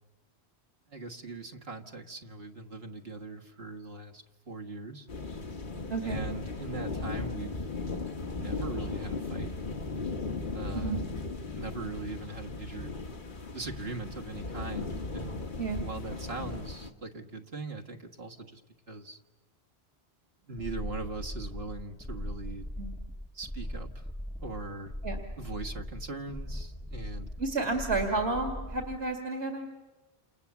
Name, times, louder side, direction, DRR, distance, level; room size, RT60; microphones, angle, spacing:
voice 1, 0.9-5.1 6.0-7.6 8.3-9.5 10.5-11.0 11.5-12.9 13.5-15.5 15.8-18.6 18.9-19.2 20.4-22.7 23.3-24.0 24.4-24.9 25.4-27.3, right 3 dB, 65° right, 4 dB, 1.9 m, -40 dB
sound 1, 5.1-16.9, left 3 dB, 50° left, 1.5 m, -37 dB
voice 2, 5.9-6.2 10.7-11.0 15.6-15.9 22.8-22.9 25.0-25.2 27.4-29.7, right 3 dB, 90° right, 3 dB, 2.6 m, -31 dB
sound 2, 20.6-29.0, left 1 dB, 5° left, 1.9 m, -39 dB
28.5 x 28.0 x 7.2 m, 1.2 s
omnidirectional pair, 1.1 m